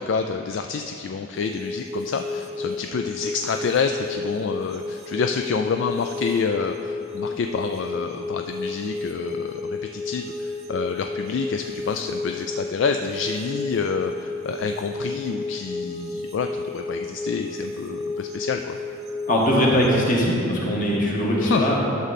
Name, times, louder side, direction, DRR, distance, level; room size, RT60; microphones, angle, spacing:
voice 1, 0.0-18.8 21.4-21.7, left 5 dB, 65° left, 5 dB, 0.3 m, -28 dB
sound 1, 1.3-20.1, left 3 dB, 30° right, 0.6 m, -32 dB
voice 2, 19.3-21.9, equal, 40° left, -3 dB, 1.5 m, -21 dB
11.0 x 6.5 x 4.2 m, 2.7 s
head